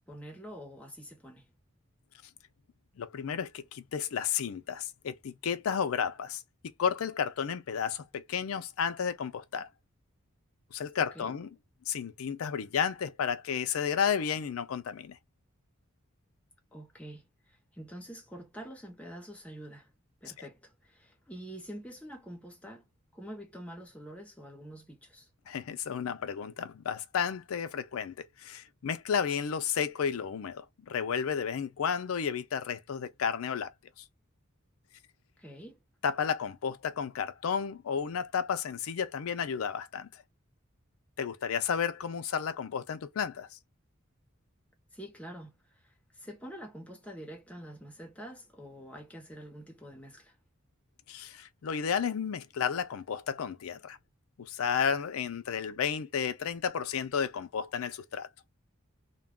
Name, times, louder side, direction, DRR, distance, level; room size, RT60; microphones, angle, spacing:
voice 1, 0.1-1.5 11.0-11.3 16.7-19.9 20.2-22.8 23.1-25.3 35.4-35.8 44.9-45.5 45.8-50.4, equal, 5° left, 0.8 m, -46 dB
voice 2, 3.0-6.4 6.8-9.7 10.7-11.5 11.9-15.2 20.4-20.5 25.5-33.7 34.0-34.1 36.0-40.2 41.2-43.6 51.1-54.0 54.4-58.3, left 7 dB, 85° left, 0.4 m, -32 dB
2.2 x 2.2 x 3.4 m
head